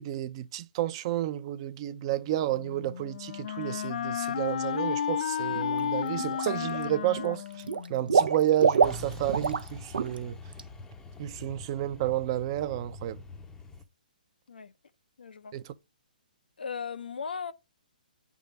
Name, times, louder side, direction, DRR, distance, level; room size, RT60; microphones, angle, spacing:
voice 1, 0.0-7.4 7.9-10.4 11.2-13.2 15.5-15.6, right 13 dB, 35° right, 0.5 m, -31 dB
Wind instrument woodwind instrument, 2.5-8.3, left 9 dB, 60° left, 0.4 m, -33 dB
Water / Liquid, 5.5-5.8 6.2-6.8 7.1-9.7 9.9-10.2 10.5-10.6, right 6 dB, 85° right, 0.6 m, -26 dB
Truck, 8.8-13.8, left 2 dB, 10° left, 0.6 m, -44 dB
voice 2, 15.2-15.5 16.6-17.5, left 6 dB, 90° left, 0.7 m, -37 dB
9.2 x 3.6 x 5.2 m
hypercardioid pair, 150°, 5 cm